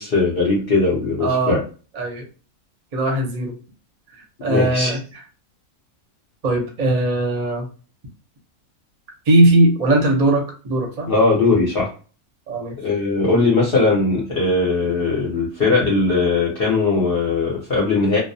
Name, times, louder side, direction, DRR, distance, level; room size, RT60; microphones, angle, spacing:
voice 1, 0.0-1.6 4.4-4.9 11.1-11.9 12.8-18.2, left 3 dB, 55° left, -4 dB, 0.7 m, -19 dB
voice 2, 1.2-1.6 2.0-2.3 2.9-3.6 4.4-5.0 6.4-7.7 9.3-11.1 12.5-12.8, right 1 dB, 40° right, 0 dB, 0.6 m, -19 dB
2.3 x 2.0 x 2.6 m, 0.37 s
omnidirectional pair, 1.5 m